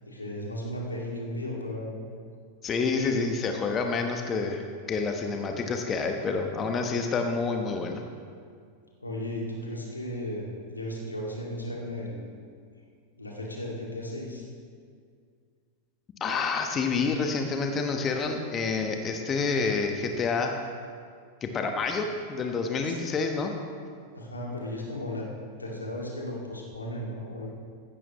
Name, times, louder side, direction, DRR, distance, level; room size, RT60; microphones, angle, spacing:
voice 1, 0.0-2.0 9.0-12.3 13.2-14.5 22.8-23.0 24.1-25.3 25.6-27.5, left 1 dB, 80° left, -2 dB, 2.3 m, -35 dB
voice 2, 2.6-4.6 4.9-8.0 16.2-20.5 21.4-23.5, left 4 dB, 25° left, 4 dB, 1.1 m, -28 dB
15.0 x 12.5 x 3.1 m, 2.1 s
figure-of-eight pair, 90°, 0 cm